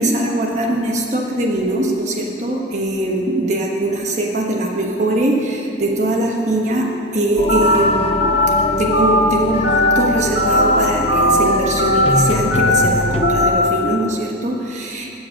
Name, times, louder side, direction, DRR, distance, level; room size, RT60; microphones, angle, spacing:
voice 1, 0.0-6.9 7.1-8.4 8.8-15.1, right 1 dB, 40° right, -1 dB, 1.2 m, -21 dB
sound 1, 7.4-13.2, left 1 dB, 35° left, 0.5 m, -23 dB
Telephone, 7.5-7.8 8.2-8.5 8.9-9.2 9.6-9.9 10.3-10.6 11.1-11.3 11.8-12.1 12.5-12.8 13.2-13.5, left 1 dB, 75° left, 2.5 m, -17 dB
8.6 x 7.9 x 6.5 m, 2.7 s
head